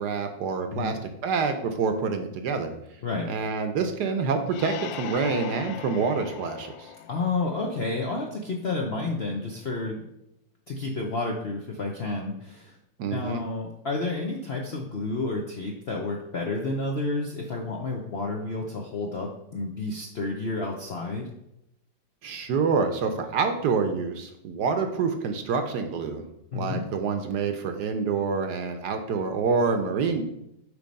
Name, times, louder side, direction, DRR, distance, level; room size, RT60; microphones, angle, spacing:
voice 1, 0.0-2.7 3.3-6.9 13.0-13.4 22.2-26.2 26.5-30.2, right 5 dB, 65° right, 6 dB, 1.2 m, -27 dB
sound 1, 4.5-8.1, left 9 dB, 85° left, 1.3 m, -40 dB
voice 2, 7.1-10.0 10.7-12.7 13.1-21.3 26.5-26.8, left 3 dB, 55° left, 0 dB, 0.6 m, -30 dB
8.3 x 3.2 x 5.2 m, 0.81 s
omnidirectional pair, 2.1 m